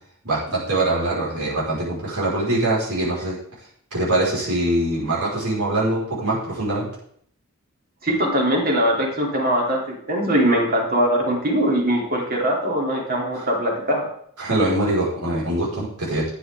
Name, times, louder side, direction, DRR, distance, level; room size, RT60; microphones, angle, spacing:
voice 1, 0.2-3.4 3.9-6.9 13.3-13.5 14.4-16.2, right 1 dB, 80° right, -6 dB, 4.9 m, -23 dB
voice 2, 8.0-14.0, equal, 40° right, -1 dB, 3.3 m, -21 dB
13.0 x 9.8 x 3.7 m, 0.64 s
head